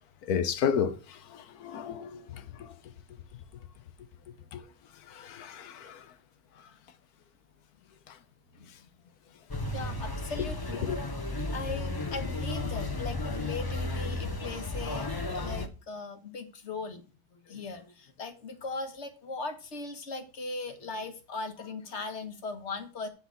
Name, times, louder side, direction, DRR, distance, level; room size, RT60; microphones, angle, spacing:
voice 1, 0.3-2.7 4.5-4.6 5.1-6.0 10.8-11.0, left 7 dB, 75° left, 1.4 m, -32 dB
voice 2, 9.5-17.0 17.3-23.1, left 3 dB, 50° left, 1.6 m, -39 dB
sound 1, 9.5-15.7, left 2 dB, 20° left, 0.7 m, -34 dB
10.5 x 4.0 x 6.9 m
omnidirectional pair, 1.6 m